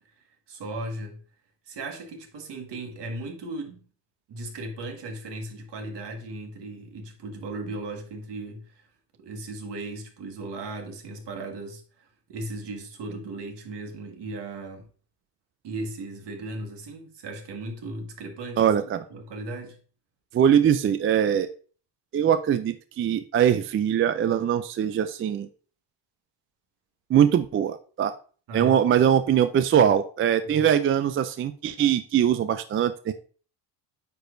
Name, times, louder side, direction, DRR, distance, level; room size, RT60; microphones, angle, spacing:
voice 1, 0.2-1.2 1.7-3.9 4.3-8.9 9.2-14.9 15.6-19.8 28.5-28.8 30.4-30.7, right 2 dB, 60° right, 1.8 m, -37 dB
voice 2, 18.6-19.0 20.3-21.5 22.1-25.5 27.1-28.1 28.5-33.1, right 9 dB, 30° right, 0.3 m, -22 dB
9.2 x 5.0 x 2.6 m
cardioid pair, 115°, 46 cm